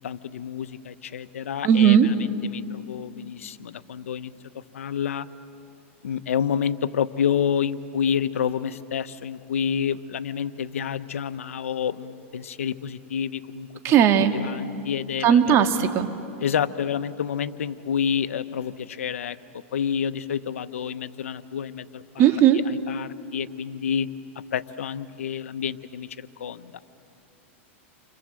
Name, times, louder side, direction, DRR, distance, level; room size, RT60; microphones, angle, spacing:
voice 1, 0.0-4.3 4.7-5.3 6.0-13.7 14.3-15.6 16.4-24.1 24.5-26.8, left 8 dB, 90° left, 13 dB, 0.9 m, -29 dB
voice 2, 1.6-2.1 13.8-14.4 15.2-16.1 22.2-22.6, right 9 dB, 35° right, 6 dB, 1.8 m, -17 dB
29.5 x 25.5 x 7.7 m, 2.6 s
hypercardioid pair, 130°, 7 cm